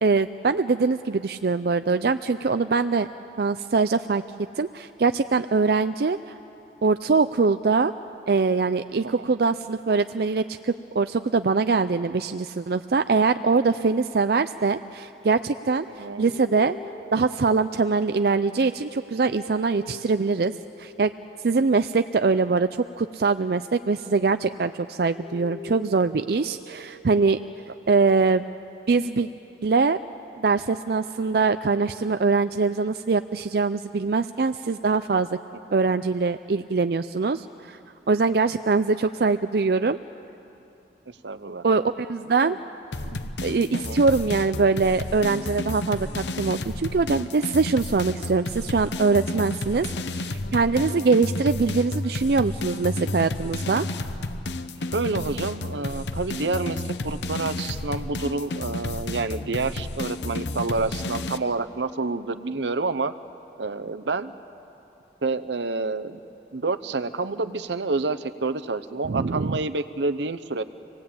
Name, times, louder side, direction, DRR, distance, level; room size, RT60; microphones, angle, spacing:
voice 1, 0.0-3.1 3.4-4.2 4.6-6.3 6.8-7.9 8.3-16.8 17.1-20.5 20.8-21.1 21.4-22.7 23.0-27.4 27.9-28.4 28.9-29.3 29.6-30.0 30.3-35.3 35.7-37.8 38.1-40.0 41.6-42.6 43.4-53.8 69.0-69.6, right 4 dB, 60° right, 10 dB, 0.4 m, -23 dB
sound 1, 15.0-24.4 24.7-28.4, left 3 dB, 60° left, 3.2 m, -46 dB
voice 2, 16.0-16.3 35.7-35.8 41.2-41.6 42.4-42.6 43.7-44.0 50.8-51.1 54.9-63.1 63.6-64.3 65.2-66.2 66.5-70.6, right 3 dB, 80° right, 12 dB, 0.8 m, -28 dB
sound 2, 42.9-61.4, left 2 dB, 80° left, 0.9 m, -31 dB
26.0 x 18.5 x 8.7 m, 2.9 s
head